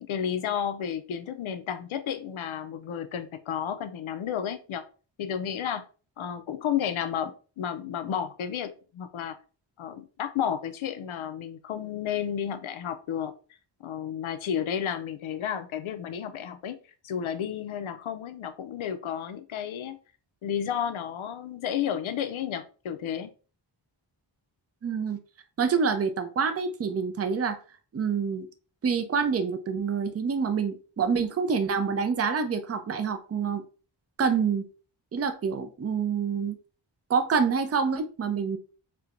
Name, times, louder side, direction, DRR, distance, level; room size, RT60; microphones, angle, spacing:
voice 1, 0.0-4.8 5.2-5.8 6.2-9.4 9.8-13.3 13.8-16.8 17.0-20.0 20.4-23.3, left 9 dB, 80° left, 10 dB, 0.5 m, -32 dB
voice 2, 24.8-25.2 25.6-27.6 27.9-28.5 28.8-33.6 34.2-34.6 35.1-36.6 37.1-38.6, right 6 dB, 35° right, 9 dB, 0.4 m, -27 dB
4.3 x 2.2 x 2.5 m, 0.37 s
wide cardioid pair, 110°, 47 cm